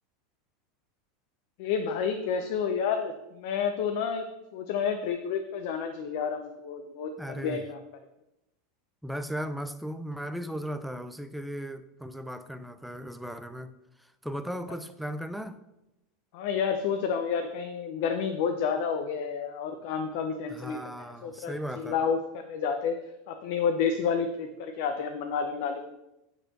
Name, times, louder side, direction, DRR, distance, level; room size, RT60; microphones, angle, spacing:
voice 1, 1.6-7.8 16.3-23.0 23.3-25.8, left 6 dB, 65° left, 6 dB, 0.8 m, -30 dB
voice 2, 7.2-7.7 9.0-13.7 14.0-15.6 20.5-22.0, equal, ahead, 10 dB, 0.5 m, -37 dB
9.1 x 4.2 x 6.6 m, 0.90 s
supercardioid pair, 150°, 0 cm